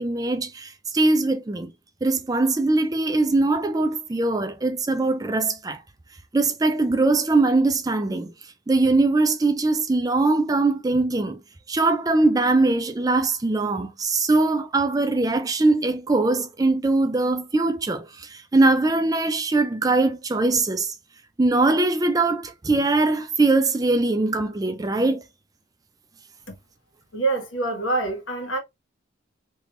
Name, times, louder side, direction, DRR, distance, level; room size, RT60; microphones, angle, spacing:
voice 1, 0.0-1.7 2.0-5.8 6.3-8.3 8.7-11.4 11.7-20.9 21.4-25.2, right 2 dB, 20° right, 0.4 m, -21 dB
voice 2, 27.1-28.6, right 3 dB, 75° left, 1.4 m, -25 dB
3.3 x 3.1 x 2.5 m
head